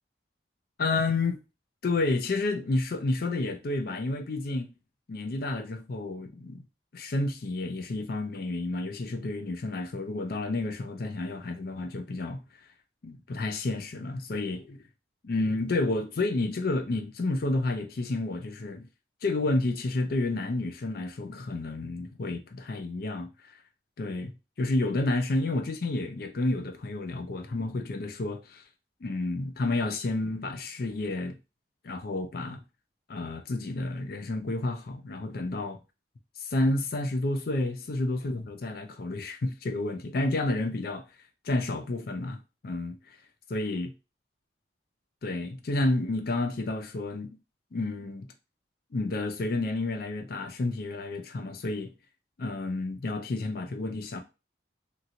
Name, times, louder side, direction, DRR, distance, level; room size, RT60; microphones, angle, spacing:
voice 1, 0.8-1.4 1.8-4.7 5.1-6.7 6.9-12.4 13.0-14.8 15.2-18.9 19.2-23.3 24.0-28.6 29.0-31.4 31.8-32.6 33.1-35.8 36.4-41.1 41.4-43.0 43.5-43.9 45.2-47.3 47.7-48.3 48.9-51.9 52.4-54.2, left 2 dB, 55° left, 0.5 m, -30 dB
2.9 x 2.8 x 2.5 m
head